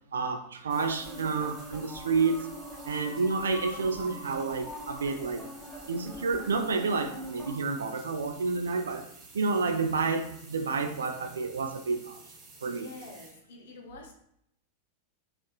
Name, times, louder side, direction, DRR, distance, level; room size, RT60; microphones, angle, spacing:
voice 1, 0.1-2.5 2.8-5.5 5.9-9.1 9.3-12.2 12.6-12.9, right 4 dB, 70° right, 6 dB, 0.3 m, -30 dB
sound 1, 0.7-7.5, equal, 10° left, 1.5 m, -43 dB
sound 2, 0.7-13.3, right 3 dB, 25° right, 0.7 m, -52 dB
voice 2, 12.6-14.1, left 3 dB, 55° left, 2 dB, 0.7 m, -47 dB
3.4 x 2.4 x 2.3 m, 0.74 s
figure-of-eight pair, 90°, 0 cm